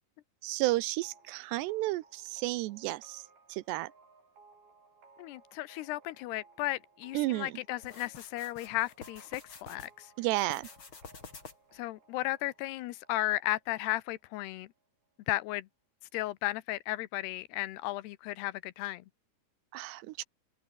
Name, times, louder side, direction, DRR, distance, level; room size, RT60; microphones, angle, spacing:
voice 1, 0.4-3.2 3.5-3.9 7.1-7.5 10.2-10.7 19.7-20.2, right 18 dB, 90° right, 3.0 m, -32 dB
sound 1, 1.0-14.5, right 4 dB, 60° right, 9.6 m, -61 dB
voice 2, 5.2-10.1 11.7-14.7 15.3-15.7 16.1-19.1, left 17 dB, 85° left, 2.9 m, -35 dB
sound 2, 7.8-9.9 10.3-11.8, left 5 dB, 30° left, 3.7 m, -49 dB
omnidirectional pair, 4.8 m